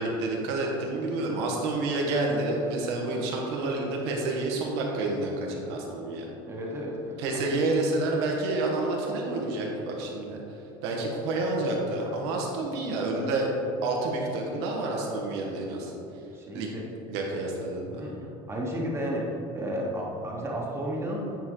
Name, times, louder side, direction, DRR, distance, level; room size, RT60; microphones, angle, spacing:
voice 1, 0.0-6.3 7.2-10.4 10.8-13.5 13.8-15.9 16.5-16.7 17.1-18.0, right 2 dB, 85° right, -1 dB, 1.5 m, -29 dB
voice 2, 6.5-7.4 16.3-16.9 17.8-21.4, equal, 20° right, -3 dB, 1.2 m, -33 dB
9.3 x 4.7 x 3.9 m, 2.9 s
cardioid pair, 135°, 13 cm